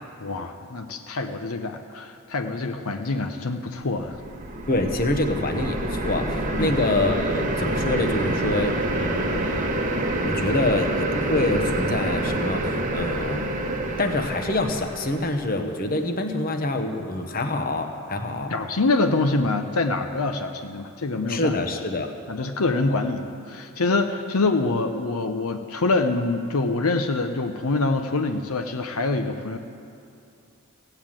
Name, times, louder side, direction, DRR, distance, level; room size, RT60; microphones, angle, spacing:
voice 1, 0.2-4.2 6.5-6.7 18.5-21.5 22.3-29.6, left 3 dB, 80° left, 6 dB, 0.8 m, -25 dB
sound 1, 4.0-15.4, right 1 dB, 35° right, 1.1 m, -27 dB
voice 2, 4.7-9.7 10.2-13.4 14.0-18.5 21.3-22.1, left 2 dB, 40° left, 5 dB, 1.1 m, -26 dB
16.0 x 7.9 x 8.9 m, 2.6 s
head